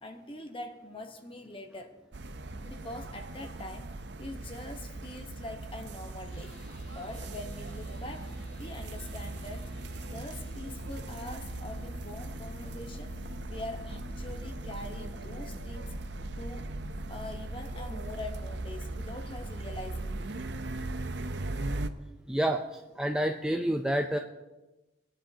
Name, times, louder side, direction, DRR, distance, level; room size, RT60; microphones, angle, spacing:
voice 1, 0.0-2.0 2.6-3.9 4.2-6.5 6.9-9.7 10.1-13.2 13.5-15.9 16.4-16.7 17.1-20.3, left 1 dB, 25° left, 5 dB, 1.1 m, -43 dB
sound 1, 2.1-21.9, right 2 dB, 60° right, 0.7 m, -39 dB
sound 2, 6.3-15.7, left 4 dB, 85° left, 3.5 m, -52 dB
voice 2, 22.3-24.2, right 1 dB, 5° right, 2 dB, 0.4 m, -29 dB
21.0 x 10.0 x 2.8 m, 1.1 s
head